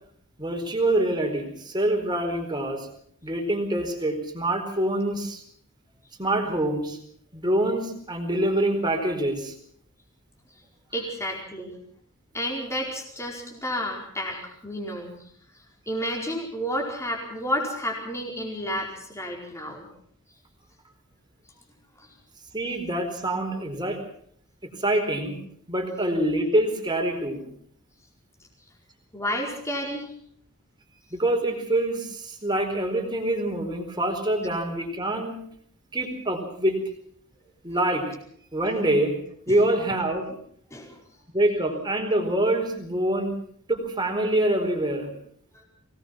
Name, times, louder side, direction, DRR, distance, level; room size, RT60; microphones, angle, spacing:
voice 1, 0.4-2.9 3.2-5.4 6.2-7.0 7.3-9.5 22.5-24.0 24.8-25.4 25.7-27.4 31.1-35.4 35.9-36.8 37.6-38.0 38.5-39.1 39.5-40.3 41.3-43.3 43.7-45.1, right 1 dB, 20° right, 4 dB, 4.5 m, -25 dB
voice 2, 10.9-11.8 12.3-15.2 15.9-19.9 22.0-22.1 29.1-30.1 39.5-39.6 40.7-41.0 45.5-45.6, equal, 15° left, 0 dB, 4.7 m, -31 dB
24.0 x 19.0 x 6.0 m, 0.64 s
head